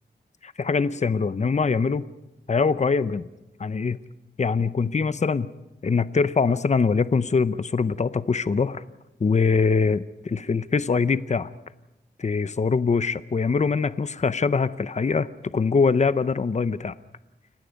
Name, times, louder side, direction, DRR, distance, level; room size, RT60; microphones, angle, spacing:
voice 1, 0.4-2.0 2.5-3.3 3.6-4.0 4.4-5.5 5.8-8.8 9.2-11.5 12.2-15.3 15.5-16.9, left 5 dB, 40° left, 15 dB, 0.7 m, -23 dB
29.5 x 17.0 x 5.2 m, 0.97 s
wide cardioid pair, 95°, 18 cm